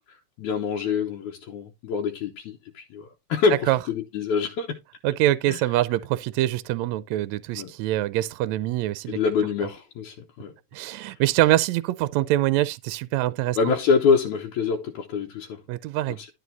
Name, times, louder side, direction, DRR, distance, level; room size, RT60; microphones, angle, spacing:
voice 1, 0.4-4.8 5.5-5.6 7.6-7.7 9.1-10.5 10.8-11.1 13.6-15.6 16.2-16.3, left 5 dB, 75° left, 2.3 m, -26 dB
voice 2, 5.0-9.2 10.7-13.7 15.7-16.2, right 15 dB, 80° right, 1.7 m, -24 dB
11.5 x 4.6 x 4.0 m
omnidirectional pair, 3.5 m